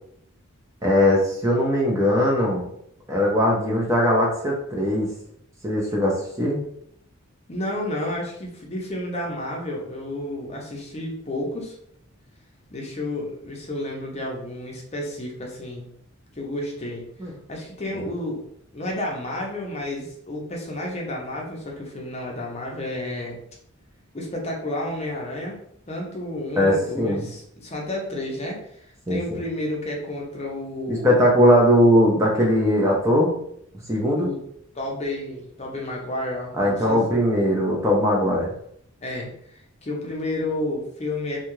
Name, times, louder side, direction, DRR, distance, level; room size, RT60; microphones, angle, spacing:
voice 1, 0.8-2.7 3.1-5.1 5.6-6.6 17.2-17.3 17.9-18.0 26.6-27.2 29.1-29.4 30.9-33.3 33.9-34.3 36.5-38.5, equal, 15° right, -2 dB, 0.5 m, -20 dB
voice 2, 7.5-11.8 12.7-15.9 16.4-17.0 17.5-18.4 18.7-23.4 24.1-25.6 25.9-28.6 29.1-31.2 34.1-34.4 34.7-37.2 39.0-41.4, left 1 dB, 30° left, -1 dB, 0.6 m, -31 dB
2.7 x 2.3 x 3.0 m, 0.69 s
head